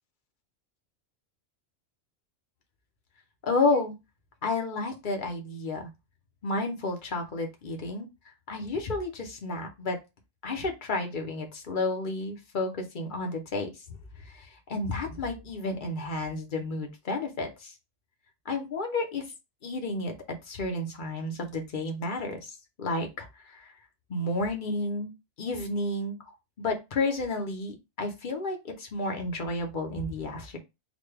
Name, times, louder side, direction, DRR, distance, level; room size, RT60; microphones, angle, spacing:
voice 1, 3.4-4.0 4.4-5.9 6.4-8.1 8.5-10.0 10.4-13.7 14.3-17.7 18.5-19.3 19.6-23.7 24.1-25.1 25.4-26.2 26.6-30.6, left 2 dB, 45° left, 3 dB, 0.9 m, -31 dB
4.0 x 2.3 x 3.3 m, 0.24 s
omnidirectional pair, 1.2 m